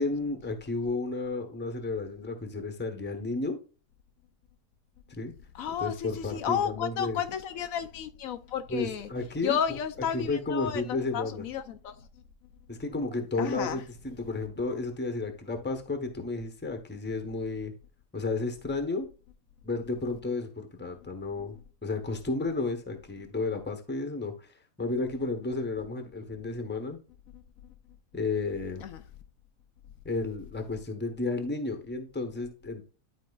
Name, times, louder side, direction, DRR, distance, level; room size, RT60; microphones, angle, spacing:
voice 1, 0.0-3.6 5.1-5.3 5.8-7.2 8.7-9.8 10.1-11.4 12.7-17.7 18.1-19.1 19.6-24.5 24.8-27.0 28.1-28.8 30.0-32.8, left 3 dB, 10° left, 0.8 m, -32 dB
voice 2, 5.5-9.1 9.4-11.9 13.4-13.8 28.8-29.0, left 8 dB, 75° left, 1.0 m, -32 dB
11.0 x 4.4 x 2.3 m
omnidirectional pair, 1.5 m